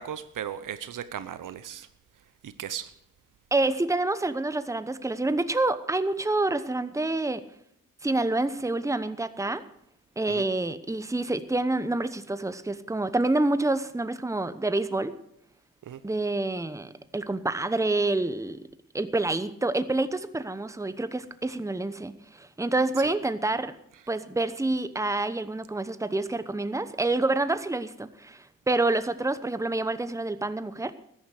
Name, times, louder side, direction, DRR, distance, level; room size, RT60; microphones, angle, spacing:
voice 1, 0.0-1.9 2.4-2.9 10.3-10.4 15.9-16.0 23.0-23.1, right 9 dB, 70° right, 13 dB, 0.9 m, -37 dB
voice 2, 3.5-7.4 8.0-9.6 10.2-15.2 16.0-18.6 18.9-23.7 24.1-30.9, right 2 dB, 10° right, 12 dB, 1.0 m, -27 dB
13.5 x 10.0 x 6.5 m, 0.73 s
cardioid pair, 60°, 33 cm